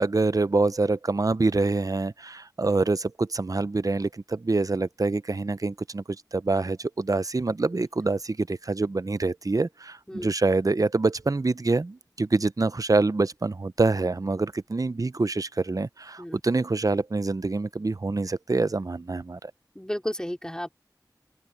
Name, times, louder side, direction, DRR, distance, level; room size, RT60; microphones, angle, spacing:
voice 1, 0.0-19.5, right 3 dB, 55° right, 0.6 m, -26 dB
voice 2, 19.7-20.7, equal, 10° left, 4.3 m, -32 dB
open air
wide cardioid pair, 45°, 7 cm